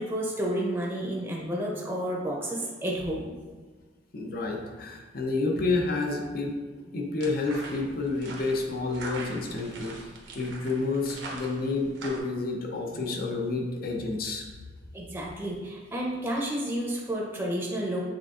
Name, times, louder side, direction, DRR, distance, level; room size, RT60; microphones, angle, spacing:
voice 1, 0.0-3.3 14.9-18.0, right 1 dB, 10° right, -3 dB, 0.6 m, -31 dB
voice 2, 4.1-14.5, left 3 dB, 55° left, 1 dB, 0.6 m, -30 dB
sound 1, 7.2-12.2, right 2 dB, 85° right, 0.8 m, -42 dB
6.2 x 3.4 x 2.4 m, 1.4 s
head